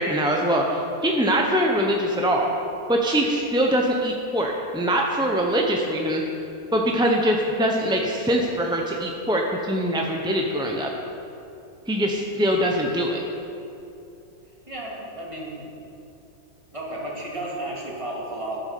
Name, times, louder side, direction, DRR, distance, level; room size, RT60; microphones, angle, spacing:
voice 1, 0.0-2.5 2.9-6.2 6.7-10.9 11.9-13.2, equal, 5° right, 0 dB, 0.6 m, -23 dB
voice 2, 14.7-15.8 16.7-18.6, right 1 dB, 20° right, -4 dB, 2.3 m, -33 dB
10.5 x 10.0 x 6.7 m, 2.7 s
omnidirectional pair, 1.6 m